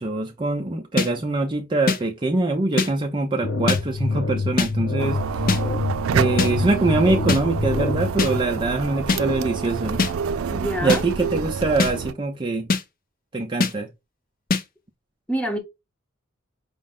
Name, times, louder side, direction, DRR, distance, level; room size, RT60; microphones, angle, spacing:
voice 1, 0.0-5.5 6.1-10.0 10.8-12.7 13.3-13.9, right 2 dB, 25° right, 0.5 m, -24 dB
sound 1, 1.0-1.1 1.9-2.0 2.8-2.9 3.7-3.8 4.6-4.7 5.5-5.6 6.4-6.5 7.3-7.4 8.2-8.3 9.1-9.2 10.0-10.1 10.9-11.0 11.8-11.9 12.7-12.8 13.6-13.7 14.5-14.6, left 4 dB, 45° left, 0.5 m, -21 dB
sound 2, 3.4-8.4, left 3 dB, 85° left, 0.8 m, -26 dB
sound 3, 5.0-12.1, right 6 dB, 85° right, 0.4 m, -28 dB
voice 2, 10.5-11.0 15.3-15.6, right 1 dB, 5° left, 0.9 m, -26 dB
5.1 x 2.0 x 3.6 m
head